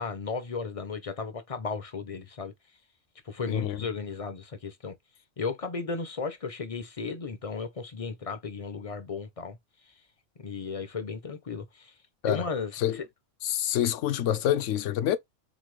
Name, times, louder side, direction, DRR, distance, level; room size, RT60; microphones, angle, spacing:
voice 1, 0.0-2.5 3.2-4.9 5.4-9.6 10.4-11.9 12.3-13.1, left 4 dB, 40° left, 0.5 m, -35 dB
voice 2, 3.5-3.8 12.2-12.5 12.7-13.0 13.4-15.2, left 11 dB, 70° left, 0.9 m, -27 dB
4.1 x 4.0 x 3.2 m
omnidirectional pair, 1.4 m